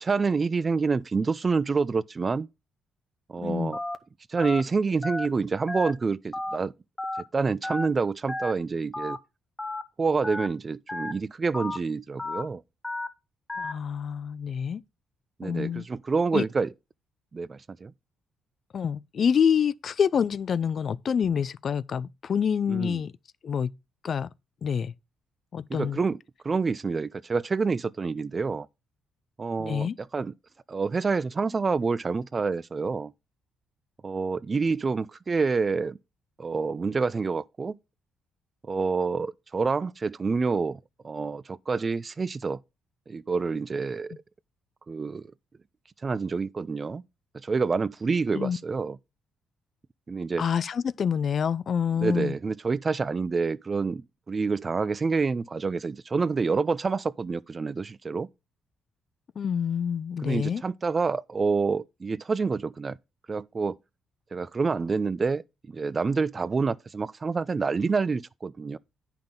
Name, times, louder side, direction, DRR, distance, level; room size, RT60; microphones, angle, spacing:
voice 1, 0.0-2.5 3.3-3.8 4.3-6.7 7.3-9.2 10.0-12.6 15.4-16.7 17.3-17.9 22.7-23.0 25.7-26.2 26.4-28.7 29.4-30.3 30.7-33.1 34.0-36.0 36.4-37.8 38.7-40.8 41.0-42.6 43.1-44.2 44.9-45.3 46.0-47.0 47.3-49.0 50.1-50.4 52.0-54.0 54.3-58.3 60.2-63.0 63.3-63.8 64.3-68.8, right 4 dB, 35° right, 0.3 m, -27 dB
voice 2, 3.4-3.7 13.6-14.8 15.4-15.9 16.3-16.5 18.7-23.1 23.4-23.7 24.0-24.3 24.6-24.9 25.5-26.0 29.6-30.0 48.3-48.6 50.4-52.3 59.4-60.6, left 7 dB, 50° left, 0.3 m, -27 dB
Telephone, 3.7-4.0 4.4-4.6 5.0-5.3 5.7-5.9 6.3-6.6 7.0-7.2 7.6-7.9 8.3-8.5 8.9-9.2 9.6-9.8 10.2-10.5 10.9-11.1 11.5-11.8 12.2-12.4 12.8-13.1 13.5-13.7, left 2 dB, 15° left, 0.7 m, -32 dB
8.8 x 5.8 x 3.7 m
cardioid pair, 90°, 0 cm